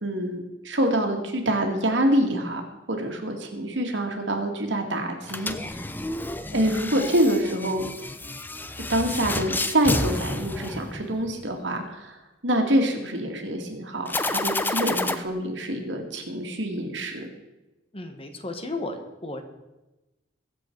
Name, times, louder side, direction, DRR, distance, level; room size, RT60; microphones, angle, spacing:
voice 1, 0.0-2.6 2.9-5.7 6.5-7.8 8.9-17.3, right 1 dB, 75° right, 3 dB, 2.2 m, -26 dB
sound 1, 5.2-11.4 14.1-15.1, left 2 dB, 10° left, 0.6 m, -30 dB
voice 2, 17.9-19.4, left 2 dB, 30° left, 7 dB, 1.4 m, -34 dB
22.0 x 7.6 x 4.6 m, 1.0 s
head